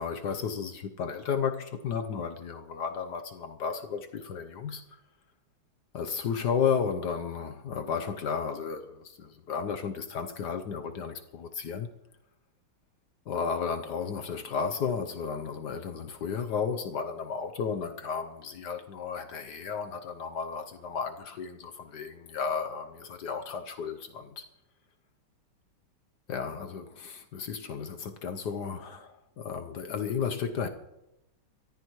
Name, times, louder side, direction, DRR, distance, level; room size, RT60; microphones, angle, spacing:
voice 1, 0.0-5.0 5.9-11.9 13.3-24.4 26.3-30.7, left 6 dB, 60° left, 1.2 m, -33 dB
23.0 x 14.5 x 3.1 m
omnidirectional pair, 2.4 m